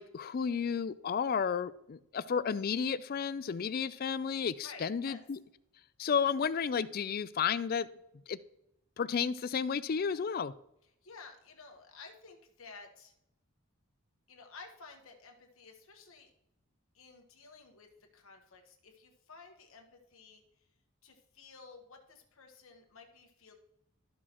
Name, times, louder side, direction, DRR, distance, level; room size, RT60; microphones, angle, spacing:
voice 1, 0.0-5.4 6.0-7.9 8.3-8.4 9.0-10.5, left 6 dB, 45° left, 16 dB, 0.3 m, -32 dB
voice 2, 4.6-5.2 11.0-13.1 14.3-16.3 16.9-20.4 21.0-23.5, left 4 dB, 70° left, 3 dB, 1.2 m, -53 dB
12.5 x 6.2 x 3.0 m, 0.80 s
head